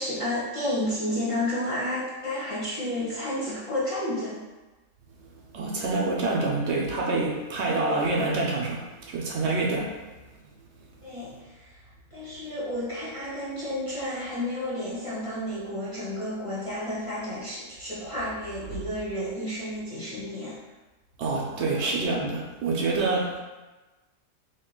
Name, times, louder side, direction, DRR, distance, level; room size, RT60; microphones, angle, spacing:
voice 1, 0.0-4.4 11.0-11.8 12.1-20.6 21.4-21.9, left 1 dB, 35° left, -9 dB, 0.6 m, -31 dB
voice 2, 5.5-9.9 21.2-23.4, right 3 dB, 65° right, -1 dB, 0.8 m, -27 dB
2.9 x 2.6 x 3.7 m, 1.2 s
omnidirectional pair, 1.3 m